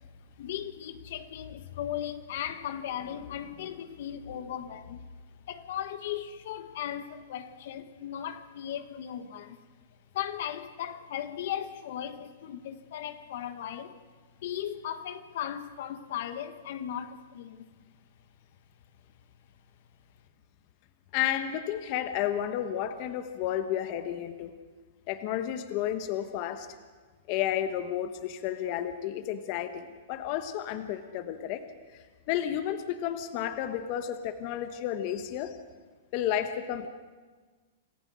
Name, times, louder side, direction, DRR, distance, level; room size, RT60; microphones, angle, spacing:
voice 1, 0.4-5.0 5.5-9.6 10.1-14.0 14.4-17.7, left 10 dB, 65° left, 10 dB, 1.3 m, -37 dB
voice 2, 21.1-24.5 25.1-26.7 27.3-31.6 31.9-35.6 36.1-36.9, left 11 dB, 45° left, 9 dB, 1.3 m, -32 dB
27.5 x 15.0 x 6.4 m, 1.4 s
hypercardioid pair, 140°, 0 cm